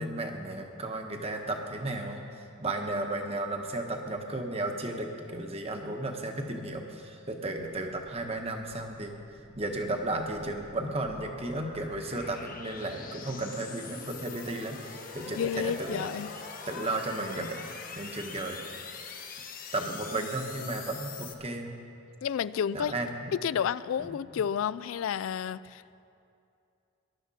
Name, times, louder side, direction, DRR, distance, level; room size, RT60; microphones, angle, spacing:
voice 1, 0.0-2.2 2.6-9.1 9.6-16.1 16.7-17.6 18.0-18.6 19.7-21.7 22.7-23.3 24.0-24.1, right 2 dB, 30° right, 3 dB, 1.1 m, -34 dB
sound 1, 8.1-21.3, left 5 dB, 40° left, 1.1 m, -44 dB
voice 2, 15.4-16.3 22.2-22.9 23.4-25.9, left 8 dB, 80° left, 18 dB, 0.3 m, -31 dB
19.5 x 12.0 x 4.2 m, 2.5 s
head